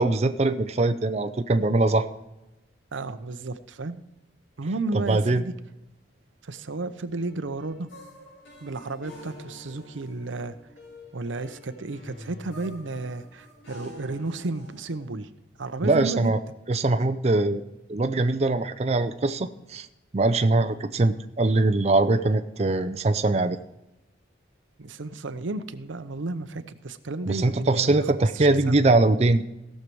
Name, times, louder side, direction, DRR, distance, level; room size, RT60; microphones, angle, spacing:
voice 1, 0.0-2.1 5.1-5.4 15.8-16.4 16.7-17.6 17.9-19.9 20.1-23.6 27.3-29.4, right 2 dB, 35° right, 9 dB, 0.5 m, -22 dB
voice 2, 2.9-4.0 4.6-5.5 6.4-7.9 8.6-10.6 11.1-15.3 15.6-16.3 24.8-28.8, right 3 dB, 85° right, 11 dB, 0.7 m, -33 dB
sound 1, 7.1-15.1, left 1 dB, 85° left, 5.1 m, -47 dB
16.5 x 6.6 x 4.6 m, 0.93 s
head